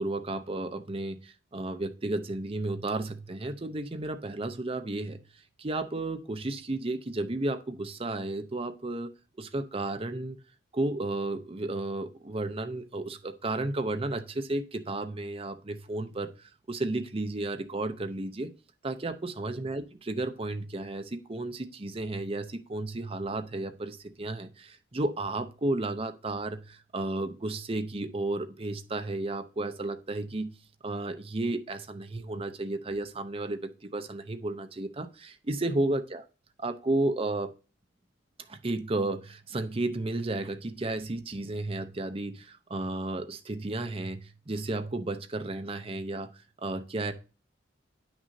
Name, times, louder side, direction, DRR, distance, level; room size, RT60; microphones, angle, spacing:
voice 1, 0.0-5.2 5.6-9.1 9.4-10.4 10.7-18.5 18.8-30.6 30.8-36.2 36.6-37.5 38.5-46.3 46.6-47.1, right 2 dB, 30° right, 8 dB, 0.7 m, -33 dB
9.5 x 6.1 x 2.7 m, 0.34 s
head